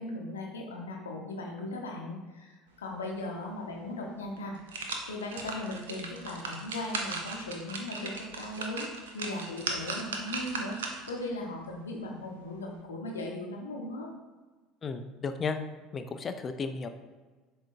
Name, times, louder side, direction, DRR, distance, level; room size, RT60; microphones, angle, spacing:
voice 1, 0.0-4.6 5.1-10.8 11.1-14.1, left 1 dB, 75° left, 0 dB, 0.7 m, -38 dB
sound 1, 3.8-3.9 4.4-11.2 11.7-11.8, right 3 dB, 70° right, 0.5 m, -37 dB
voice 2, 14.8-15.6 15.9-16.9, left 5 dB, 30° left, 8 dB, 0.4 m, -34 dB
7.2 x 2.6 x 2.4 m, 1.3 s
figure-of-eight pair, 65°, 0 cm